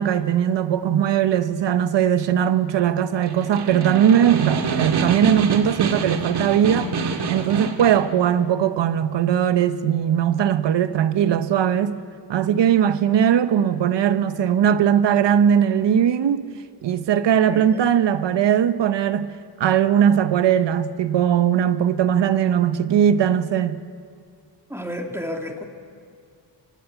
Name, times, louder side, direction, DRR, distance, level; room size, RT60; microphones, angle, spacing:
voice 1, 0.0-6.9 7.3-12.0 12.3-16.4 16.8-19.3 19.6-23.8, right 9 dB, 80° right, 1.0 m, -19 dB
Snare drum, 3.1-8.1, right 4 dB, 65° right, 1.8 m, -26 dB
voice 2, 17.3-17.8 24.7-25.6, equal, 5° right, 2.0 m, -32 dB
23.5 x 18.5 x 8.2 m
wide cardioid pair, 140°, 42 cm